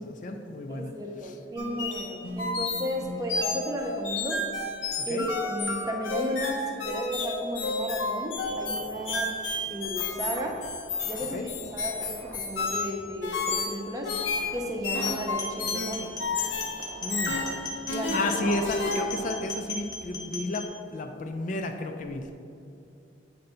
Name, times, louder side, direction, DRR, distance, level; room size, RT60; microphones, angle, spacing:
voice 1, 0.0-0.9 1.2-1.3 5.0-5.3 8.7-8.8 11.3-11.5 17.0-17.4 18.1-22.3, left 2 dB, 45° left, 5 dB, 0.4 m, -32 dB
voice 2, 0.7-4.4 5.1-9.4 9.7-10.6 11.0-14.1 14.5-16.2 17.9-18.4, equal, 20° right, 1 dB, 0.6 m, -34 dB
sound 1, 1.6-19.0, left 3 dB, 85° left, 0.8 m, -31 dB
sound 2, 8.3-20.3, right 2 dB, 65° right, 0.7 m, -44 dB
sound 3, 15.3-20.7, left 3 dB, 20° left, 0.7 m, -37 dB
7.9 x 2.6 x 5.4 m, 2.6 s
head